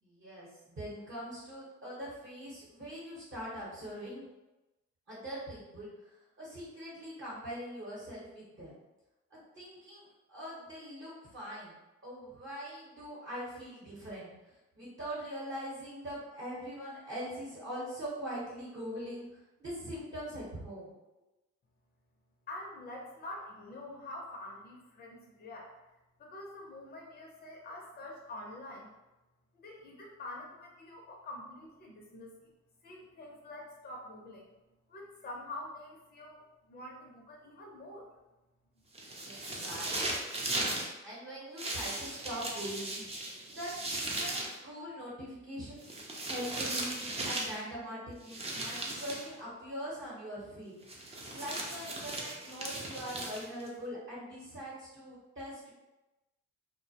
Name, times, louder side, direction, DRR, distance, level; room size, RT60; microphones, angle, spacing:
voice 1, 0.0-4.2 5.1-8.8 9.3-11.7 12.0-14.3 14.7-19.3 19.6-20.9 39.2-40.2 41.0-43.0 43.5-45.8 46.3-50.8 51.3-55.7, equal, 40° right, -8 dB, 0.9 m, -42 dB
voice 2, 22.5-25.7 26.2-28.9 29.5-32.5 32.8-34.5 34.9-38.1, left 1 dB, 30° left, -1 dB, 0.5 m, -46 dB
sound 1, 38.9-40.9 41.6-44.5 45.8-47.6 48.3-49.3 50.9-53.7, right 2 dB, 20° right, 0.5 m, -37 dB
2.2 x 2.0 x 2.7 m, 1.0 s
cardioid pair, 90°, 30 cm